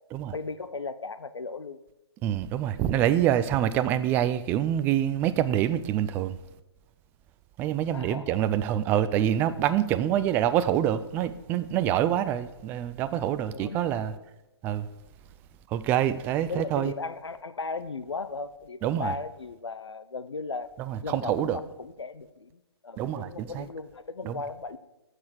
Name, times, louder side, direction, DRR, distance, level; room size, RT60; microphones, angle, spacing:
voice 1, 0.3-1.8 7.9-8.4 13.5-14.0 16.5-20.7 21.0-24.8, left 4 dB, 85° left, 0.8 m, -36 dB
voice 2, 2.2-6.4 7.6-14.2 14.6-14.9 15.7-16.9 18.8-19.2 20.8-21.6 23.0-23.7 24.2-24.4, right 11 dB, 15° right, 0.4 m, -26 dB
13.0 x 6.5 x 6.5 m
hypercardioid pair, 145°, 14 cm